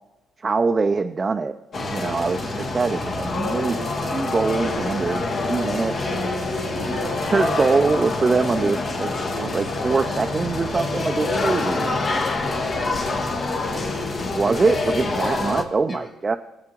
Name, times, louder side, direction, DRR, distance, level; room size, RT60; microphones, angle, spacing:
voice 1, 0.4-1.5 1.9-6.3 7.2-11.8 14.3-16.4, right 4 dB, 30° right, 5 dB, 0.5 m, -23 dB
sound 1, 1.7-15.6, left 2 dB, 50° left, 1.5 m, -26 dB
voice 2, 12.0-13.9 15.1-15.4 15.9-16.1, left 2 dB, 30° left, 0 dB, 2.8 m, -38 dB
19.5 x 8.6 x 3.0 m, 0.97 s
cardioid pair, 90°, 0 cm